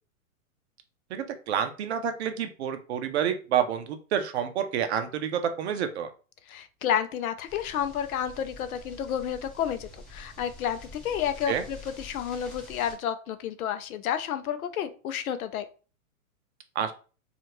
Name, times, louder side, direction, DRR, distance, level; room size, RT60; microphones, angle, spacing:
voice 1, 1.1-6.1 11.5-11.6 16.8-16.9, right 8 dB, 50° right, 8 dB, 0.5 m, -28 dB
voice 2, 6.5-10.8 11.0-15.6, left 9 dB, 75° left, 10 dB, 0.6 m, -30 dB
sound 1, 7.5-12.9, left 2 dB, 15° left, 0.9 m, -47 dB
2.7 x 2.4 x 2.9 m, 0.36 s
hypercardioid pair, 140°, 43 cm